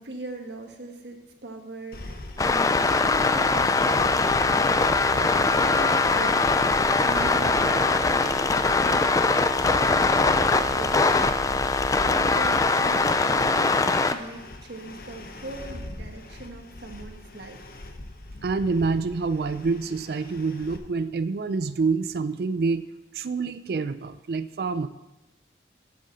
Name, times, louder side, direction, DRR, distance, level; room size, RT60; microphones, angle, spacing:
voice 1, 0.0-4.7 5.1-6.5 6.9-17.6, right 2 dB, 80° right, 4 dB, 1.3 m, -40 dB
sound 1, 1.9-20.8, left 1 dB, 55° left, 0.9 m, -40 dB
sound 2, 2.4-14.1, left 3 dB, 20° left, 0.3 m, -22 dB
sound 3, 6.6-10.6, right 1 dB, 20° right, 1.5 m, -41 dB
voice 2, 18.4-22.9 23.1-24.9, right 4 dB, 60° right, 13 dB, 0.4 m, -27 dB
8.7 x 6.6 x 6.3 m, 1.0 s
head